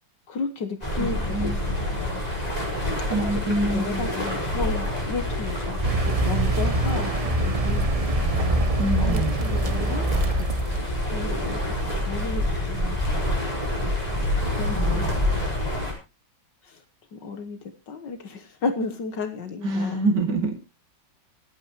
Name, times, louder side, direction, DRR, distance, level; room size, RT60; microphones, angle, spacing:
voice 1, 0.3-2.2 3.2-5.8 6.1-7.1 7.4-7.9 9.0-10.1 10.4-10.5 11.1-13.2 13.8-14.0 14.6-15.2 16.6-16.8 17.1-17.6 17.9-20.1, left 4 dB, 70° left, 7 dB, 1.9 m, -33 dB
sound 1, 0.8-15.9, left 1 dB, 20° left, 5.0 m, -27 dB
voice 2, 1.0-1.6 3.1-4.1 8.8-9.4 14.7-15.1 19.6-20.5, right 2 dB, 65° right, 4 dB, 3.0 m, -26 dB
Car, 5.8-11.0, right 2 dB, 35° right, 0.6 m, -25 dB
26.0 x 8.8 x 3.1 m, 0.29 s
omnidirectional pair, 2.0 m